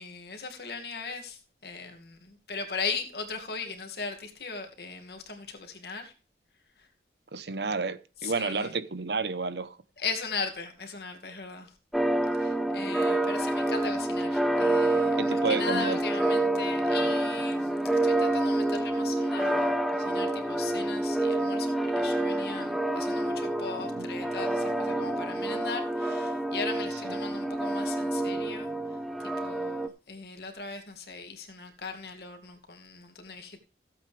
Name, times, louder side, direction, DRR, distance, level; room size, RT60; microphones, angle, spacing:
voice 1, 0.0-6.1 8.2-8.7 10.0-11.7 12.4-17.7 18.0-28.7 29.2-33.6, left 4 dB, 60° left, 2.3 m, -38 dB
voice 2, 7.3-9.8 15.2-16.0 23.9-24.1 27.0-27.2, right 4 dB, 70° right, 0.9 m, -31 dB
sound 1, 11.9-29.9, right 1 dB, ahead, 0.6 m, -28 dB
15.5 x 8.3 x 3.4 m
head